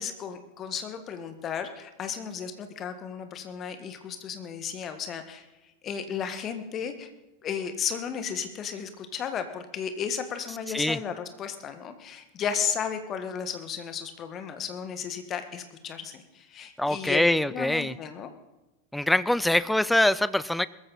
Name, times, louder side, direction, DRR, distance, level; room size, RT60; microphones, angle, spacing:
voice 1, 0.0-5.5 5.8-7.1 7.4-18.3, left 7 dB, 30° left, 8 dB, 1.7 m, -34 dB
voice 2, 16.8-17.9 18.9-20.7, left 1 dB, 5° left, 18 dB, 0.5 m, -24 dB
21.0 x 14.0 x 4.3 m, 1.0 s
figure-of-eight pair, 90°, 0 cm